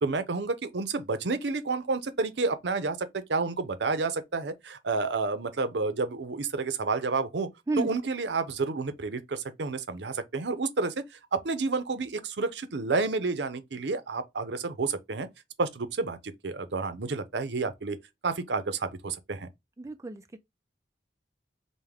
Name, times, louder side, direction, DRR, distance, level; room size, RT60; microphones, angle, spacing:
voice 1, 0.0-7.5 7.8-11.0 11.3-15.3 15.6-18.0 18.2-19.5, right 3 dB, 85° right, 0.7 m, -30 dB
voice 2, 19.8-20.4, right 2 dB, 15° right, 0.4 m, -31 dB
5.1 x 2.2 x 3.5 m
head